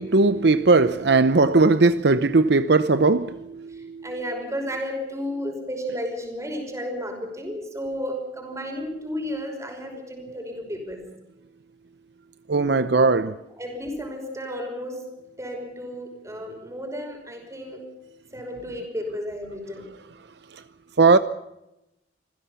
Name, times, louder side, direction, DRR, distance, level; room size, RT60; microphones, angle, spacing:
voice 1, 0.0-4.1 12.5-13.4 19.8-20.6 21.0-21.2, right 3 dB, 65° right, 0.8 m, -19 dB
voice 2, 3.7-11.1 13.6-15.1 15.4-17.9 18.3-19.9, equal, 15° right, 5.7 m, -33 dB
26.5 x 16.0 x 7.1 m
head